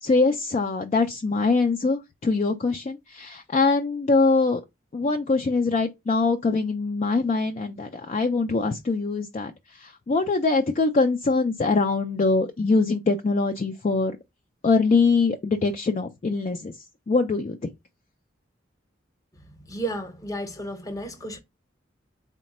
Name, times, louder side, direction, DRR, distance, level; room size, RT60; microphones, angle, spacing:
voice 1, 0.0-4.6 4.9-14.1 14.6-16.7 17.1-17.6, left 3 dB, 35° left, 0.3 m, -23 dB
voice 2, 19.7-21.4, right 1 dB, 20° left, 0.7 m, -32 dB
3.9 x 2.2 x 4.1 m
head